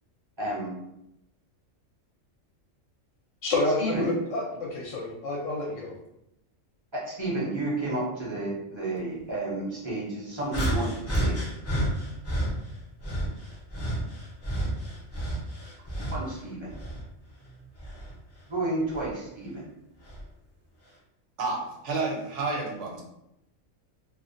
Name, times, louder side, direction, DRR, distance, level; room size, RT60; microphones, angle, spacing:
voice 1, 0.4-0.7 3.8-4.1 6.9-11.4 15.8-16.7 18.5-19.6, right 2 dB, 30° right, -6 dB, 0.5 m, -31 dB
voice 2, 3.4-5.9, left 2 dB, 75° left, -2 dB, 0.9 m, -29 dB
sound 1, 10.5-12.5 13.0-16.3 16.7-18.2 18.9-19.1 20.0-20.2, right 1 dB, 20° left, 0.4 m, -30 dB
voice 3, 21.4-23.0, right 3 dB, 70° right, -2 dB, 1.0 m, -30 dB
2.5 x 2.1 x 2.5 m, 0.83 s
omnidirectional pair, 1.3 m